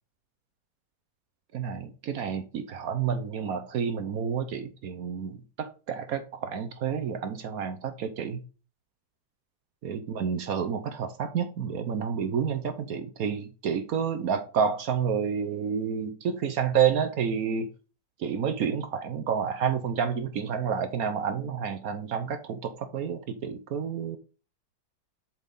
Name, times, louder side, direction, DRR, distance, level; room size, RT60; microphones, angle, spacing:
voice 1, 1.5-8.4 9.8-17.7 18.2-24.2, right 7 dB, 65° right, 0.9 m, -29 dB
7.3 x 4.1 x 5.2 m
omnidirectional pair, 2.2 m